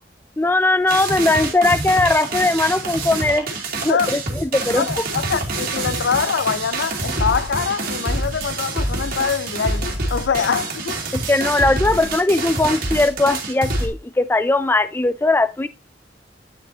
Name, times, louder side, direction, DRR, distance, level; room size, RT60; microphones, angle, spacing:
voice 1, 0.4-3.5 3.8-4.9 11.1-15.7, left 2 dB, 10° left, 0.4 m, -19 dB
sound 1, 0.9-13.9, right 2 dB, 55° right, 2.4 m, -26 dB
voice 2, 3.8-4.2 4.8-11.0, left 6 dB, 90° left, 0.5 m, -24 dB
9.4 x 7.0 x 2.8 m
head